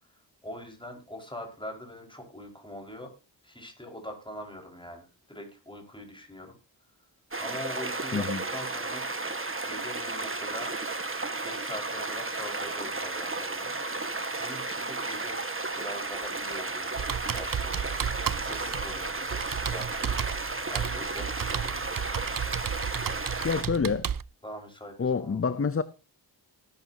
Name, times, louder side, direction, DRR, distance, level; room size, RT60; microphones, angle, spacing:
voice 1, 0.0-3.1 3.4-6.5 7.4-9.1 9.6-10.7 11.4-15.4 15.8-17.0 17.3-19.9 20.4-22.0 24.4-25.6, left 1 dB, 10° left, 5.2 m, -43 dB
sound 1, 7.3-23.6, right 3 dB, 30° right, 1.6 m, -33 dB
Computer keyboard, 17.0-24.2, right 8 dB, 50° right, 0.6 m, -33 dB
voice 2, 23.4-24.1 25.0-25.8, left 5 dB, 30° left, 0.6 m, -27 dB
19.0 x 10.5 x 2.8 m
wide cardioid pair, 75°, 44 cm